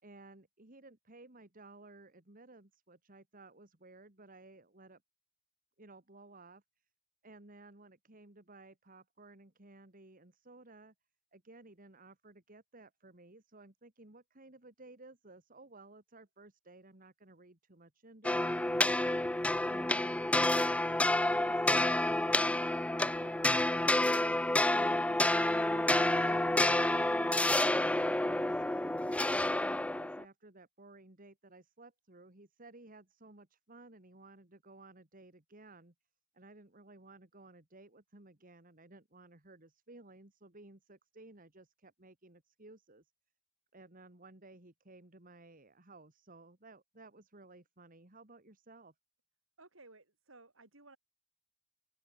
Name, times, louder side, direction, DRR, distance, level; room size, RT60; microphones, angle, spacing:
voice 1, 0.0-5.0 5.8-6.8 7.2-10.9 11.3-19.0 21.3-24.3 24.7-27.6 28.2-35.9 36.3-43.1 43.7-48.9, right 2 dB, 45° right, 2.6 m, -56 dB
sound 1, 18.2-30.2, left 1 dB, 5° left, 0.5 m, -29 dB
voice 2, 49.6-51.0, right 3 dB, 80° right, 6.1 m, -57 dB
open air
head